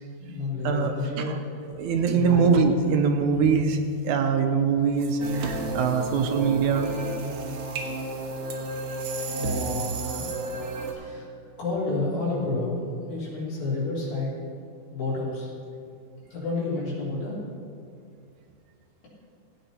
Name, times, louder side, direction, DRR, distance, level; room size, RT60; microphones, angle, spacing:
voice 1, 0.2-1.3 2.1-2.5 9.3-9.8 10.2-10.3 10.9-11.3 11.6-14.3 14.9-15.5 16.3-17.4, left 3 dB, 70° left, -8 dB, 5.0 m, -30 dB
voice 2, 1.8-3.8 4.0-6.9, right 5 dB, 75° right, 5 dB, 2.0 m, -23 dB
sound 1, 5.2-10.9, right 3 dB, 60° right, 1.7 m, -32 dB
16.5 x 8.9 x 4.3 m, 2.4 s
omnidirectional pair, 3.7 m